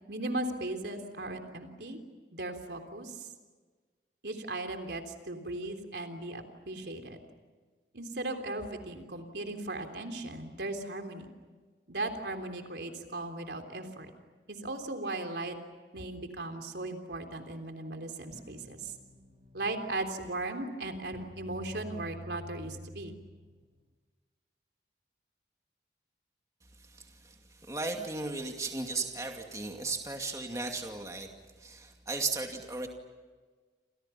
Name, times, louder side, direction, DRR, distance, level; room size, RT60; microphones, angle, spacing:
voice 1, 0.1-2.0 2.3-3.3 4.2-7.2 7.9-11.3 11.9-14.1 14.5-15.5 15.9-18.9 19.5-23.1, right 2 dB, 75° right, 5 dB, 3.4 m, -37 dB
sound 1, 18.3-23.9, equal, 45° right, 3.1 m, -49 dB
voice 2, 26.9-27.3 27.6-31.3 31.6-32.9, right 3 dB, 20° right, 3 dB, 2.4 m, -36 dB
30.0 x 28.0 x 5.8 m, 1.4 s
head